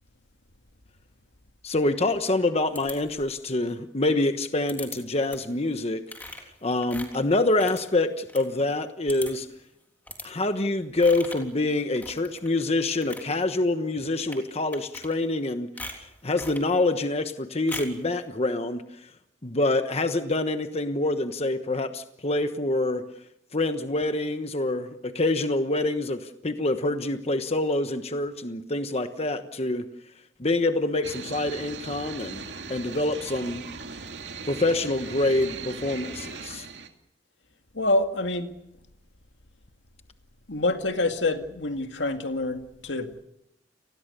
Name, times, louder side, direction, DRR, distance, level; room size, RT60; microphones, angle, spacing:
voice 1, 1.6-9.5 10.2-18.8 19.4-23.0 23.5-29.8 30.4-33.6 34.5-36.7, left 2 dB, 35° left, 1.2 m, -26 dB
sound 1, 2.7-3.4 4.7-5.0 5.3-5.6 6.1-8.5 8.8-8.9 9.1-9.5 10.1-10.3 11.0-11.5 11.9-12.5 12.9-13.3 14.2-14.4 14.7-15.4 15.8-16.7 17.7-18.0, left 2 dB, 10° left, 3.4 m, -40 dB
sound 2, 31.0-36.9, right 4 dB, 70° right, 2.5 m, -39 dB
voice 2, 37.7-38.5 40.5-43.1, left 2 dB, 75° left, 2.2 m, -26 dB
30.0 x 20.5 x 6.8 m
head